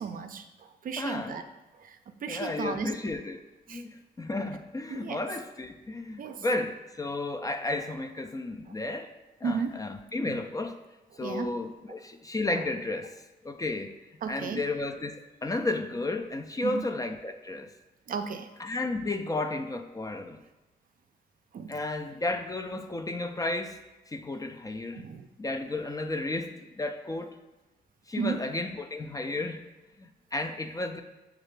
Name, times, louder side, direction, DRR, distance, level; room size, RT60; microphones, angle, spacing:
voice 1, 0.0-1.4 1.7-2.9 3.7-3.8 4.4-4.5 4.9-5.2 6.2-6.5 8.7-8.8 9.4-9.8 10.2-10.4 11.2-11.5 12.6-12.7 14.2-14.7 16.6-16.9 18.1-18.5 21.5-21.8 24.9-25.3 28.2-28.4, right 6 dB, 50° right, 8 dB, 0.4 m, -34 dB
voice 2, 1.0-1.4 2.3-3.4 3.7-9.1 9.4-10.8 11.2-13.1 13.4-13.9 14.3-17.7 18.6-20.4 21.7-23.8 24.1-25.0 25.4-27.4 28.1-29.6 30.0-31.0, left 2 dB, 20° left, 6 dB, 0.3 m, -33 dB
6.4 x 2.4 x 3.2 m, 1.1 s
cardioid pair, 65°, 18 cm